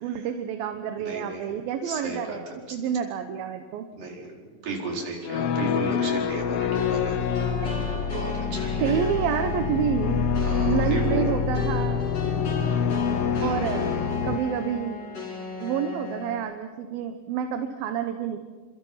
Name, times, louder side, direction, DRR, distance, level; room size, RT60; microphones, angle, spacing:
voice 1, 0.0-3.9 7.6-7.9 8.3-8.5 8.8-10.2 10.7-12.1 13.4-13.9 14.2-15.0 15.6-18.4, right 8 dB, 90° right, 7 dB, 2.9 m, -29 dB
voice 2, 1.0-1.5 1.8-2.4 2.7-2.8 4.0-7.2 8.1-9.1 10.4-11.3 13.4-13.7, right 3 dB, 70° right, -1 dB, 6.2 m, -34 dB
sound 1, 5.2-14.4, left 7 dB, 80° left, 1.3 m, -26 dB
sound 2, 6.7-16.3, left 2 dB, 50° left, 5.8 m, -35 dB
29.5 x 25.5 x 5.7 m, 1.5 s
omnidirectional pair, 4.1 m